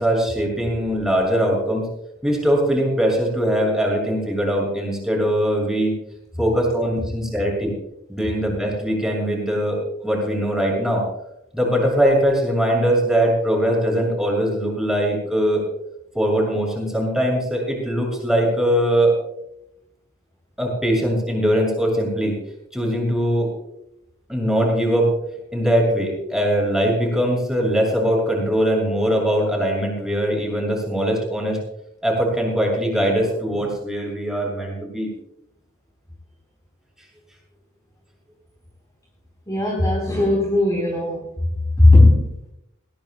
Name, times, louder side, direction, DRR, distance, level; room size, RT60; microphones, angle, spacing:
voice 1, 0.0-1.9 2.2-6.0 6.4-7.7 8.1-11.0 11.5-15.7 16.1-19.1 20.6-22.4 22.7-23.5 24.3-25.1 25.5-31.6 32.0-35.1, equal, 5° right, -2 dB, 6.8 m, -21 dB
voice 2, 39.5-41.3 41.8-42.5, left 2 dB, 20° left, -2 dB, 3.7 m, -16 dB
21.0 x 18.5 x 2.2 m, 0.83 s
head